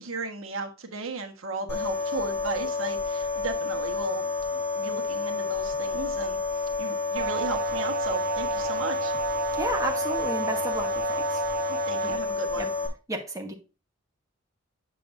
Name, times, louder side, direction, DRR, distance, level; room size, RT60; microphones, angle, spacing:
voice 1, 0.0-9.2 11.7-12.7, right 3 dB, 80° right, 1.2 m, -35 dB
sound 1, 1.7-12.9, left 4 dB, 10° left, 2.5 m, -30 dB
sound 2, 7.2-12.2, right 8 dB, 40° right, 0.5 m, -33 dB
voice 2, 9.6-11.4 12.1-12.2 12.6-12.7 13.1-13.5, right 1 dB, 15° right, 1.2 m, -32 dB
8.5 x 6.8 x 2.6 m
head